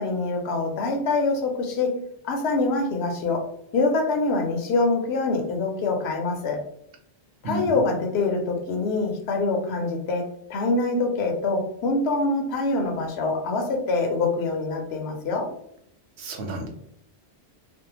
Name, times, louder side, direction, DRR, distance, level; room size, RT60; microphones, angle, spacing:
voice 1, 0.0-2.0 2.2-3.5 3.7-6.6 7.4-15.5, left 3 dB, 75° left, 2 dB, 0.9 m, -25 dB
voice 2, 7.4-7.7 16.2-16.7, right 2 dB, 85° right, 2 dB, 0.9 m, -31 dB
2.6 x 2.0 x 2.8 m, 0.72 s
omnidirectional pair, 1.1 m